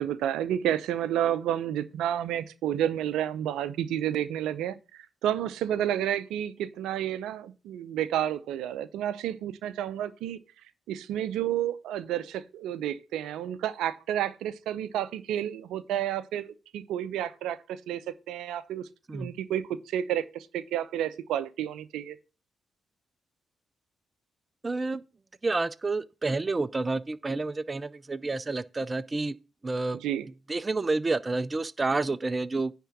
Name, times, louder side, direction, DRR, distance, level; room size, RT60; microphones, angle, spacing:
voice 1, 0.0-10.4 10.9-18.0 18.3-22.2 29.9-30.3, right 11 dB, 75° right, 0.6 m, -30 dB
voice 2, 24.6-25.0 25.4-29.4 29.6-30.0 30.5-32.8, right 3 dB, 30° right, 0.5 m, -29 dB
10.0 x 3.7 x 7.3 m
hypercardioid pair, 45°, 0 cm